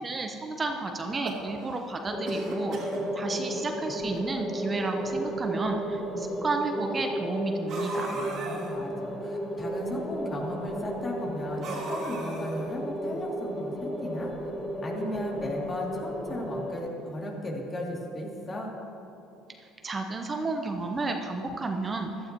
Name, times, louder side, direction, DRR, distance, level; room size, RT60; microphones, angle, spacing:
voice 1, 0.0-2.8 3.1-8.2 19.8-22.1, right 3 dB, 30° right, 4 dB, 0.9 m, -32 dB
sound 1, 1.0-1.9 2.2-3.0 3.8-3.9 4.2-4.3 5.2-5.3 7.7-8.7 11.6-12.7, right 2 dB, 60° right, 2.5 m, -37 dB
sound 2, 2.1-16.8, equal, 10° left, 1.4 m, -33 dB
voice 2, 8.1-14.5 14.8-18.7, left 1 dB, 35° left, -2 dB, 2.7 m, -36 dB
15.5 x 12.0 x 3.0 m, 2.8 s
supercardioid pair, 75°, 0 cm